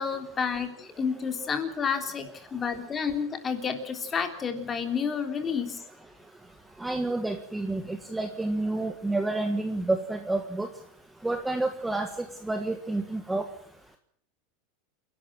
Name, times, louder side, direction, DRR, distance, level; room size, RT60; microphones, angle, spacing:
voice 1, 0.0-5.8, left 6 dB, 20° left, 7 dB, 3.3 m, -30 dB
voice 2, 6.8-10.7 11.2-12.1 12.5-13.4, right 2 dB, 5° right, 6 dB, 1.5 m, -29 dB
28.5 x 12.0 x 9.0 m, 0.63 s
supercardioid pair, 160°, 0 cm